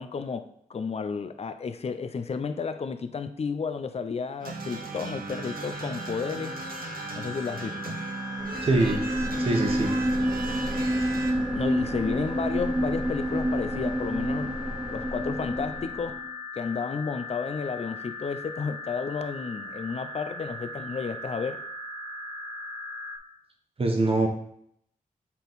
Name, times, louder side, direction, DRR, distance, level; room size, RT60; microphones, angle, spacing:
voice 1, 0.0-6.6 7.1-8.0 11.4-14.5 14.9-16.2 16.6-21.6, left 5 dB, 45° left, 9 dB, 0.5 m, -32 dB
sound 1, 4.4-11.3, right 4 dB, 85° right, 0.9 m, -37 dB
sound 2, 5.3-23.2, left 2 dB, 25° left, 1.4 m, -39 dB
sound 3, 8.4-16.2, equal, 5° right, 0.7 m, -29 dB
voice 2, 8.6-9.0 9.4-9.9 23.8-24.3, right 2 dB, 40° right, 2 dB, 1.0 m, -23 dB
7.1 x 4.4 x 4.0 m, 0.71 s
wide cardioid pair, 155°, 15 cm